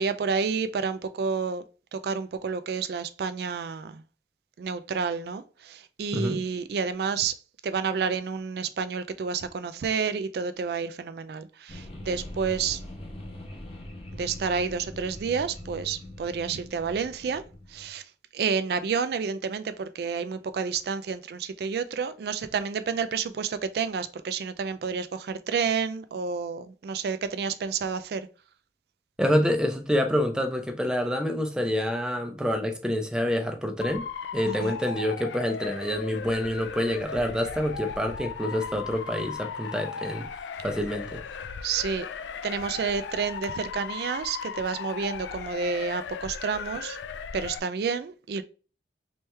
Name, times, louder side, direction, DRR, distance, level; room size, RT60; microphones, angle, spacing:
voice 1, 0.0-1.6 1.9-4.0 4.6-7.4 7.6-12.8 14.1-17.4 17.7-18.0 18.3-28.3 34.5-34.8 41.6-42.1 42.4-47.0 47.3-48.4, right 5 dB, 60° right, 0.3 m, -30 dB
sound 1, 11.7-17.9, left 1 dB, 35° left, 0.9 m, -42 dB
voice 2, 29.2-34.0 34.3-40.3 40.6-41.2, equal, 5° right, 0.5 m, -27 dB
Motor vehicle (road) / Siren, 33.8-47.6, left 6 dB, 90° left, 0.3 m, -37 dB
3.3 x 3.0 x 3.2 m
head